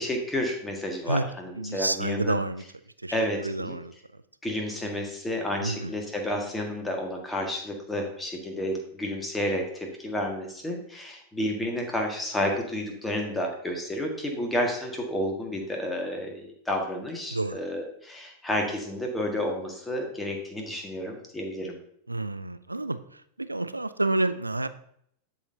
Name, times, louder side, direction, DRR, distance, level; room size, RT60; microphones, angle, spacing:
voice 1, 0.0-2.4 3.1-3.8 4.4-21.8, left 1 dB, 10° left, 1 dB, 1.7 m, -31 dB
voice 2, 1.6-2.6 3.0-3.1 3.4-3.9 5.6-5.9 17.3-17.6 22.1-24.7, right 2 dB, 85° right, 13 dB, 0.4 m, -29 dB
12.0 x 4.2 x 2.8 m, 0.68 s
figure-of-eight pair, 90°, 0 cm